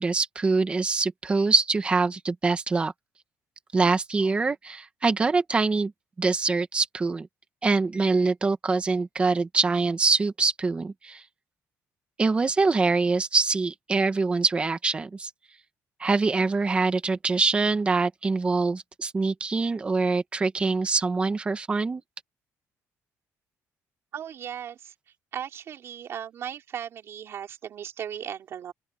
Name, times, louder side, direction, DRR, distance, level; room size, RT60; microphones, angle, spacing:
voice 1, 0.0-2.9 3.7-5.9 6.2-7.3 7.6-11.2 12.2-15.3 16.0-22.0, right 4 dB, 20° right, 1.3 m, -24 dB
voice 2, 24.1-24.9 25.3-28.7, right 9 dB, 45° right, 3.8 m, -37 dB
open air
cardioid pair, 180°, 6 cm